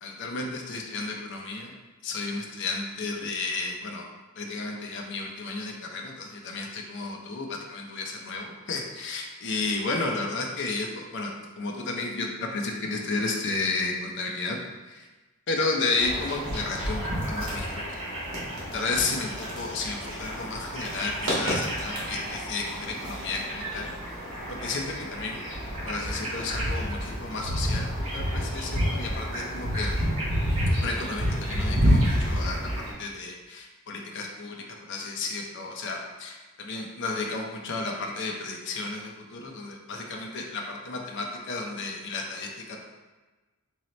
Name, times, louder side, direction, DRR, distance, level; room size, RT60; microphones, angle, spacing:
voice 1, 0.0-1.7 2.0-4.0 4.4-11.3 11.6-14.6 14.9-15.0 15.5-17.8 18.7-23.9 24.6-25.4 25.8-29.9 30.8-32.6 33.0-36.3 36.7-42.8, left 3 dB, 55° left, 1 dB, 0.5 m, -32 dB
sound 1, 16.0-32.9, equal, 65° right, 1.3 m, -29 dB
3.8 x 2.8 x 3.1 m, 1.2 s
head